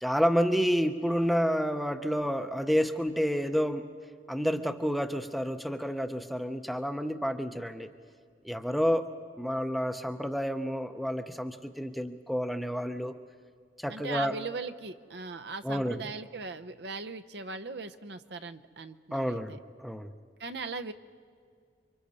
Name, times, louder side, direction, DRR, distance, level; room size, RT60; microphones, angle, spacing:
voice 1, 0.0-3.9 4.3-7.9 8.4-9.1 9.4-13.1 13.8-14.4 15.6-16.0 19.1-20.1, equal, ahead, 8 dB, 0.6 m, -29 dB
voice 2, 13.9-19.6 20.4-20.9, right 4 dB, 65° right, 8 dB, 0.7 m, -39 dB
29.5 x 24.0 x 4.2 m, 2.1 s
head